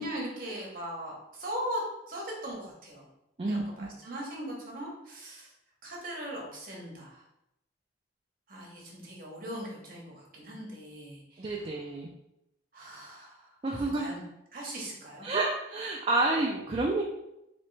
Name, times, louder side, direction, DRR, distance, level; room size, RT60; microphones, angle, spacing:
voice 1, 0.0-1.8 2.1-3.0 3.4-5.5 5.8-7.2 8.5-11.6 12.7-14.2 14.5-15.3, equal, 45° right, -3 dB, 1.0 m, -39 dB
voice 2, 3.4-3.9 11.4-12.1 13.6-14.2 15.2-17.0, right 2 dB, 30° right, -2 dB, 0.3 m, -29 dB
3.2 x 3.0 x 3.2 m, 0.86 s
head